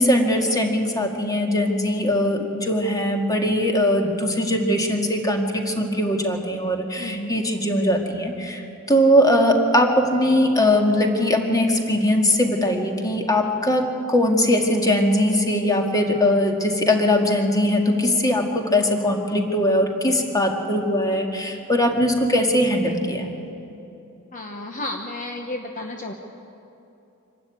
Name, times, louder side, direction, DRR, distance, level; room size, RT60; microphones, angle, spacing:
voice 1, 0.0-23.3, left 1 dB, 15° left, 3 dB, 2.0 m, -20 dB
voice 2, 7.0-7.3 24.3-26.1, left 2 dB, 35° left, 3 dB, 1.0 m, -32 dB
25.5 x 13.0 x 9.2 m, 2.9 s
head